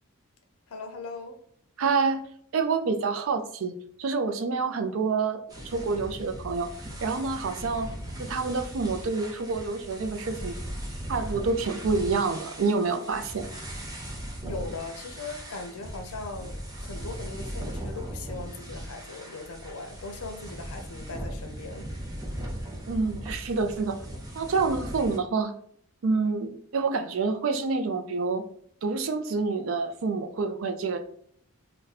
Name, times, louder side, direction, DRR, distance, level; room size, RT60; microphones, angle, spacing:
voice 1, 0.7-1.4 14.4-21.9, left 3 dB, 85° left, 0.6 m, -39 dB
voice 2, 1.8-2.2 2.5-3.7 4.0-6.7 7.0-7.9 8.2-10.6 11.1-13.4 22.9-24.0 24.3-25.5 26.0-28.4 28.8-31.0, right 4 dB, 65° right, 0.4 m, -27 dB
sound 1, 5.5-25.2, equal, 15° right, 0.6 m, -38 dB
2.6 x 2.2 x 4.0 m
head